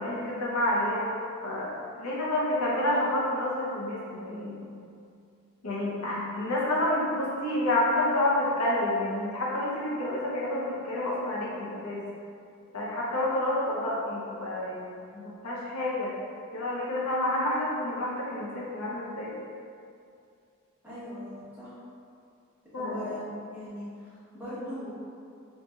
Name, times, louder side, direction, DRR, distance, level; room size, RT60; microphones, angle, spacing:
voice 1, 0.0-4.7 5.6-12.0 12.7-16.2 16.5-19.3 22.7-23.2, left 1 dB, 90° left, -4 dB, 0.7 m, -29 dB
voice 2, 20.8-21.8 22.8-24.9, left 1 dB, 10° right, -12 dB, 1.0 m, -39 dB
3.9 x 2.6 x 2.4 m, 2.4 s
head